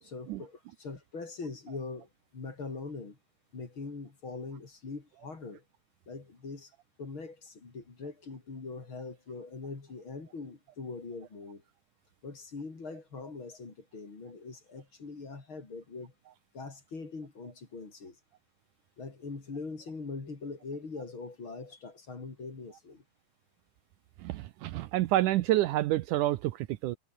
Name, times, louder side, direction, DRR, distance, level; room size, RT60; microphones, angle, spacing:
voice 1, 0.0-3.2 3.5-5.6 6.1-6.7 7.0-11.6 12.2-16.1 16.5-18.2 19.0-23.0, left 4 dB, 35° left, 4.4 m, -42 dB
voice 2, 24.2-27.0, right 15 dB, 75° right, 2.1 m, -28 dB
omnidirectional pair, 3.9 m